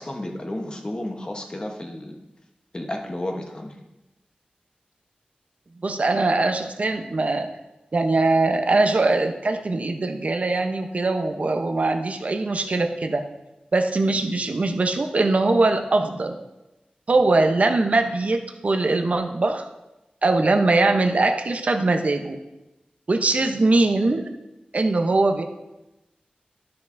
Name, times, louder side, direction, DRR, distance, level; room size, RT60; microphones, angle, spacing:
voice 1, 0.0-2.2 2.7-3.8, left 1 dB, 30° left, 2 dB, 1.0 m, -32 dB
voice 2, 5.8-7.5 7.9-13.2 13.7-16.4 17.1-19.7 20.2-22.4 23.1-24.3 24.7-25.4, right 2 dB, 55° right, 5 dB, 0.7 m, -21 dB
12.0 x 5.6 x 2.6 m, 0.99 s
wide cardioid pair, 90°, 3 cm